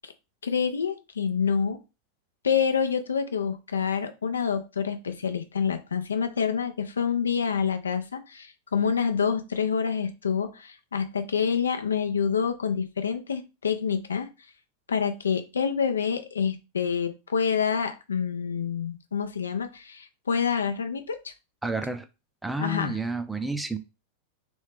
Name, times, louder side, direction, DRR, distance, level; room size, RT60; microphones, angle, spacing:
voice 1, 0.4-1.8 2.4-14.3 14.9-21.3 22.6-23.0, left 6 dB, 70° left, 0.5 m, -27 dB
voice 2, 21.6-22.0 22.4-23.8, right 2 dB, 5° right, 0.5 m, -30 dB
3.1 x 3.1 x 3.3 m
figure-of-eight pair, 90°, 0 cm